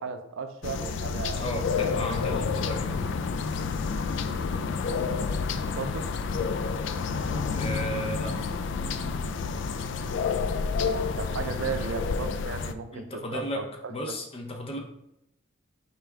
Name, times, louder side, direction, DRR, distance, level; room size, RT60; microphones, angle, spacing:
voice 1, 0.0-1.6 4.5-4.7 5.6-6.1 11.2-14.2, right 5 dB, 80° right, 8 dB, 0.5 m, -35 dB
sound 1, 0.6-12.7, left 5 dB, 65° left, 0.3 m, -29 dB
voice 2, 1.4-3.0 7.5-8.4 11.8-11.9 12.9-13.6 13.9-14.8, equal, 30° left, 2 dB, 0.7 m, -34 dB
4.5 x 3.3 x 3.5 m, 0.82 s
head